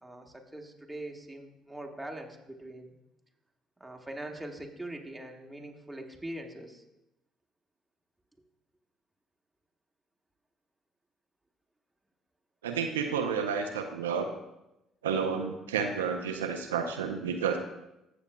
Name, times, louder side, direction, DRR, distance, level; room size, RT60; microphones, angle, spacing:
voice 1, 0.0-2.9 3.8-6.8, right 1 dB, 10° right, 2 dB, 1.4 m, -42 dB
voice 2, 12.6-14.3 15.0-17.6, right 6 dB, 90° right, 5 dB, 0.5 m, -30 dB
14.5 x 6.9 x 2.2 m, 0.90 s
hypercardioid pair, 55°, 0 cm